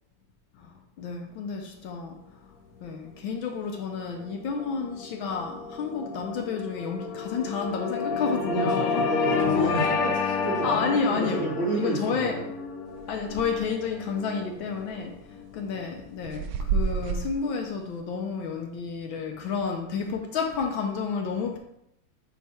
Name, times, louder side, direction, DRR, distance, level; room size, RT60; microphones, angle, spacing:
voice 1, 0.5-9.1 9.6-9.9 10.6-12.4 13.1-21.6, left 5 dB, 70° left, 3 dB, 1.4 m, -31 dB
sound 1, 3.6-16.2, left 5 dB, 90° left, 1.7 m, -31 dB
voice 2, 8.5-12.5, right 2 dB, 35° right, -4 dB, 1.4 m, -30 dB
sound 2, 12.9-13.7 14.0-14.1 14.8-15.2 15.8-17.4, right 5 dB, 85° right, 1.5 m, -29 dB
8.3 x 3.5 x 4.3 m, 0.76 s
omnidirectional pair, 2.4 m